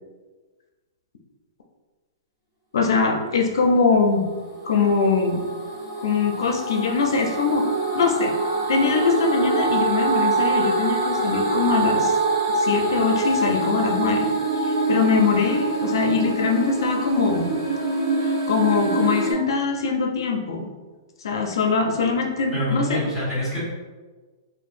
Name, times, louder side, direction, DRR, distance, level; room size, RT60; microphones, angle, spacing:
voice 1, 2.7-4.3 4.6-5.4 6.0-7.6 7.9-8.3 8.7-12.1 12.5-14.3 14.6-17.5 18.2-20.7 21.2-23.0, left 5 dB, 80° left, 3 dB, 0.5 m, -22 dB
sound 1, 4.2-19.3, right 3 dB, 25° right, 1.0 m, -25 dB
voice 2, 22.5-23.6, equal, 5° right, -11 dB, 1.2 m, -25 dB
4.5 x 2.5 x 2.5 m, 1.3 s
hypercardioid pair, 175°, 2 cm